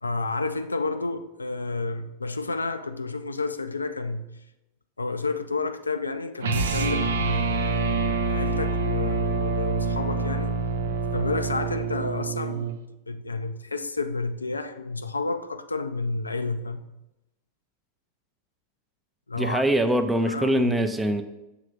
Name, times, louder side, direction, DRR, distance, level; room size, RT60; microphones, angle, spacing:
voice 1, 0.0-4.3 5.0-10.5 11.1-12.7 13.1-16.9 19.3-19.6 20.2-20.9, left 3 dB, 80° left, 0.3 m, -30 dB
sound 1, 6.4-12.8, right 4 dB, 65° right, 0.5 m, -26 dB
voice 2, 19.4-21.2, right 1 dB, 10° right, 0.5 m, -23 dB
6.5 x 3.2 x 5.1 m
figure-of-eight pair, 90°, 0 cm